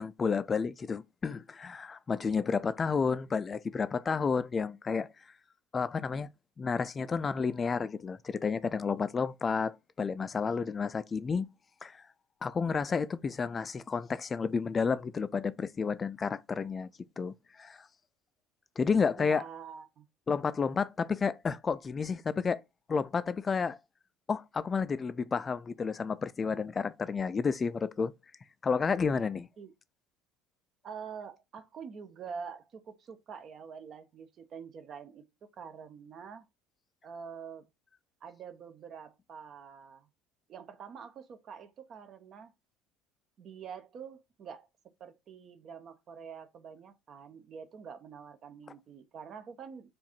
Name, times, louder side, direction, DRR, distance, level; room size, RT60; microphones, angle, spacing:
voice 1, 0.0-5.1 5.7-6.3 6.6-11.5 11.8-12.0 12.4-16.9 17.2-17.9 18.8-19.4 20.3-22.6 22.9-23.8 24.3-28.1 28.6-29.5, left 5 dB, 30° left, 0.3 m, -31 dB
voice 2, 19.2-20.1 29.6-29.7 30.8-36.5 37.0-37.7 38.2-40.1 40.5-42.5 43.4-44.7 45.0-49.9, right 6 dB, 50° right, 0.6 m, -46 dB
4.6 x 2.5 x 4.3 m
hypercardioid pair, 75°, 0 cm